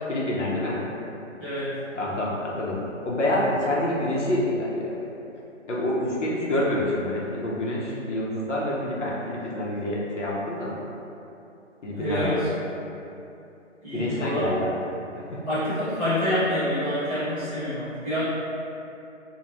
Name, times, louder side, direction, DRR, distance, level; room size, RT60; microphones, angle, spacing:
voice 1, 0.1-0.8 1.9-5.0 5.7-10.8 11.8-12.5 13.9-14.8 15.1-15.4, left 1 dB, 65° left, -5 dB, 0.7 m, -27 dB
voice 2, 1.4-1.7 11.9-12.5 13.8-14.5 15.5-18.2, left 1 dB, 10° right, -21 dB, 0.6 m, -27 dB
2.4 x 2.1 x 3.0 m, 2.7 s
figure-of-eight pair, 150°, 38 cm